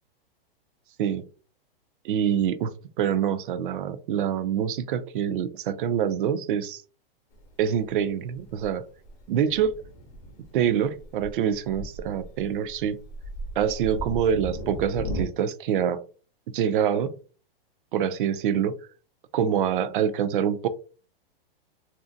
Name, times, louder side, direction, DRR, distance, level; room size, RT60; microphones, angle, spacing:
voice 1, 2.0-6.8 7.6-8.8 9.3-9.7 10.5-13.0 13.6-16.0 16.5-17.1 17.9-18.7 19.3-20.7, right 8 dB, 60° right, 12 dB, 0.4 m, -25 dB
Thunder, 7.3-15.2, equal, 25° left, 0.5 m, -38 dB
2.6 x 2.1 x 2.5 m, 0.37 s
hypercardioid pair, 140°, 30 cm